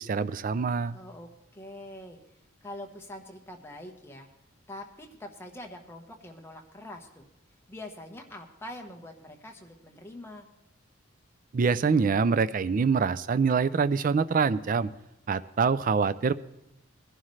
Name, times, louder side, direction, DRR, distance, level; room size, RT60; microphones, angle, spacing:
voice 1, 0.0-1.0 11.5-14.9 15.3-16.3, right 5 dB, 40° right, 15 dB, 0.3 m, -25 dB
voice 2, 0.9-2.2 2.6-4.3 4.7-7.3 7.7-10.5, left 1 dB, 10° left, 2 dB, 1.1 m, -44 dB
20.0 x 11.0 x 3.2 m, 0.82 s
head